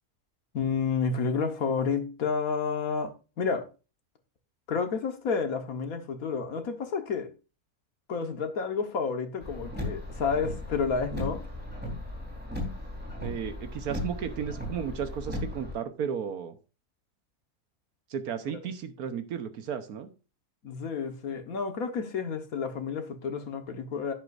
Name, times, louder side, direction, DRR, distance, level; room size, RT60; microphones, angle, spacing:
voice 1, 0.5-3.7 4.7-7.3 8.1-11.4 20.6-24.1, left 5 dB, 65° left, 1.8 m, -30 dB
Car, 9.4-15.7, left 1 dB, 5° right, 3.9 m, -36 dB
voice 2, 13.2-16.6 18.1-20.1, right 7 dB, 75° right, 1.6 m, -34 dB
10.5 x 9.6 x 2.6 m
omnidirectional pair, 1.6 m